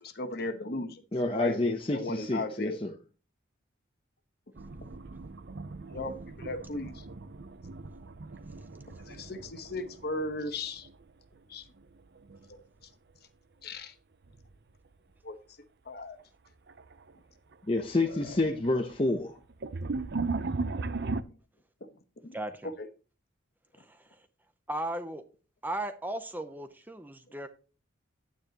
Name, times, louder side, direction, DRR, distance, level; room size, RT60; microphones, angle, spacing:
voice 1, 0.0-1.0 1.3-1.6 1.9-2.8 5.9-7.0 9.1-10.9 11.5-11.6 12.5-12.6 13.6-13.9 15.2-15.4 15.9-16.2 22.2-22.4 22.8-22.9, left 2 dB, 50° left, 1.1 m, -36 dB
voice 2, 1.1-2.9 17.7-19.4, left 2 dB, 25° left, 0.7 m, -28 dB
sound 1, 4.6-11.4 11.7-12.5 14.2-14.6 15.1-15.2 16.2-16.3 16.7-17.1 17.5-21.2, right 3 dB, 55° right, 0.6 m, -38 dB
voice 3, 22.3-22.7 23.8-24.0 24.7-25.2 25.6-27.5, right 1 dB, 10° right, 0.6 m, -36 dB
10.0 x 9.3 x 2.9 m
head